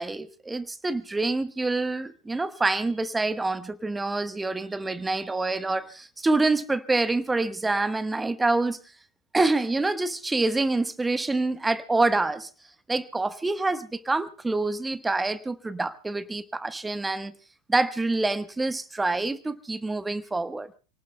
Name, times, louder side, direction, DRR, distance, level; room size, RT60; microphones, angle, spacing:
voice 1, 0.0-8.8 9.3-12.5 12.9-17.3 17.7-20.7, right 2 dB, 10° right, 1.2 m, -26 dB
29.5 x 18.5 x 2.2 m
figure-of-eight pair, 80°, 0 cm